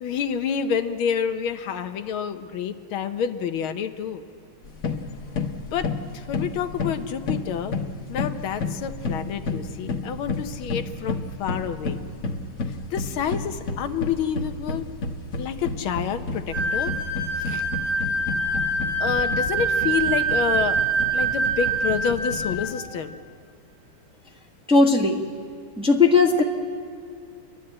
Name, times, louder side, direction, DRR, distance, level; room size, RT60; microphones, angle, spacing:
voice 1, 0.0-4.2 5.7-7.8 8.1-12.0 12.9-14.9 15.4-17.0 17.4-17.7 18.4-18.6 19.0-20.8 21.1-23.2, left 7 dB, 90° left, 8 dB, 1.8 m, -28 dB
sound 1, 4.6-22.7, left 3 dB, 50° left, 1.4 m, -32 dB
sound 2, 16.5-22.6, right 3 dB, 80° right, 8.4 m, -25 dB
voice 2, 24.7-25.2 25.8-26.4, left 4 dB, 5° right, -1 dB, 1.1 m, -17 dB
30.0 x 12.0 x 8.7 m, 2.3 s
omnidirectional pair, 2.2 m